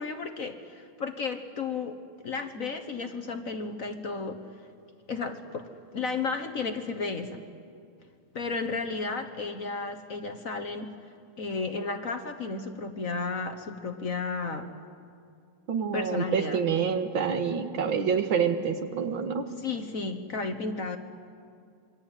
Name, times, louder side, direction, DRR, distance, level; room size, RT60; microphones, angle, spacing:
voice 1, 0.0-4.4 5.1-5.7 5.9-7.4 8.3-10.9 11.4-14.7 15.9-16.6 19.6-21.0, left 4 dB, 45° left, 8 dB, 1.4 m, -33 dB
voice 2, 15.7-19.5, right 6 dB, 70° right, 7 dB, 2.2 m, -27 dB
27.0 x 23.0 x 9.1 m, 2.3 s
omnidirectional pair, 2.3 m